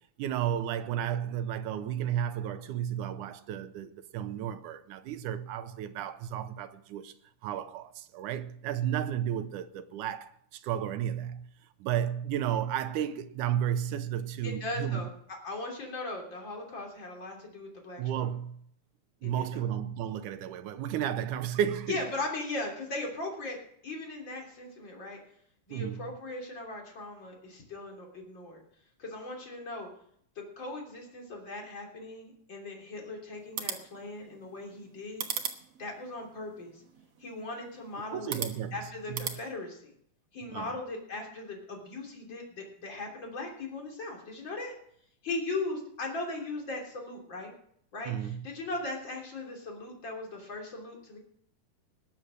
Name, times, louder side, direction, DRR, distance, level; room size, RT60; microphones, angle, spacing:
voice 1, 0.2-7.1 7.4-11.5 11.8-15.1 18.0-18.6 19.2-22.0 25.7-26.1 38.1-38.8 39.1-39.4 40.5-40.7 48.1-48.5, right 10 dB, 80° right, 2.2 m, -33 dB
voice 2, 14.4-18.3 19.2-19.6 21.9-25.2 25.7-28.6 29.0-29.9 30.4-35.2 35.8-36.8 37.2-38.4 38.7-39.9 40.3-44.7 45.2-47.5 47.9-51.2, left 2 dB, 35° left, 3.6 m, -38 dB
sound 1, 33.4-39.4, right 8 dB, 60° right, 2.0 m, -41 dB
20.0 x 7.5 x 6.4 m
omnidirectional pair, 3.8 m